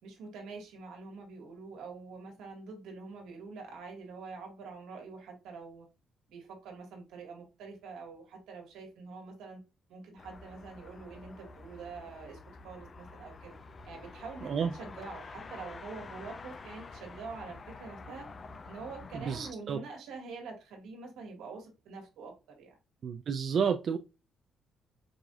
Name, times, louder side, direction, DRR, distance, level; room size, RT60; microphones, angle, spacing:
voice 1, 0.0-5.8 6.3-9.6 9.9-13.6 13.8-18.3 18.6-22.8, right 4 dB, 90° right, 1.5 m, -45 dB
sound 1, 10.2-19.5, left 4 dB, 40° left, 0.4 m, -48 dB
voice 2, 19.3-19.8 23.0-24.0, right 6 dB, 55° right, 0.3 m, -30 dB
4.8 x 2.6 x 2.4 m
cardioid pair, 90°, 0 cm